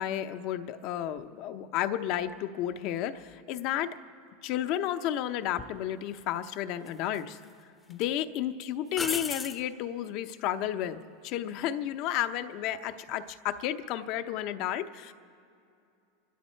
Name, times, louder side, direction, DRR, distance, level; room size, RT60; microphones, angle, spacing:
voice 1, 0.0-3.9 4.4-7.4 7.9-15.1, left 11 dB, 50° left, 10 dB, 0.8 m, -32 dB
sound 1, 5.6-5.7 6.9-7.5 7.9-8.0 8.9-9.6 12.7-13.1, left 4 dB, 15° left, 0.8 m, -35 dB
26.0 x 12.0 x 4.5 m, 2.6 s
supercardioid pair, 135°, 0 cm